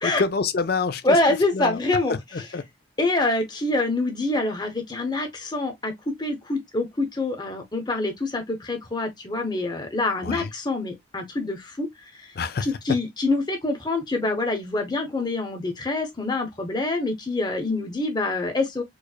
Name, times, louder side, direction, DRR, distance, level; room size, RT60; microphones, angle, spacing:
voice 1, 0.0-1.2 1.5-1.8 2.1-2.6 10.2-10.5 12.4-12.7, left 4 dB, 50° left, 0.4 m, -27 dB
voice 2, 1.0-2.2 3.0-11.9 12.6-18.8, left 2 dB, 20° left, 0.9 m, -25 dB
4.7 x 2.4 x 2.2 m
head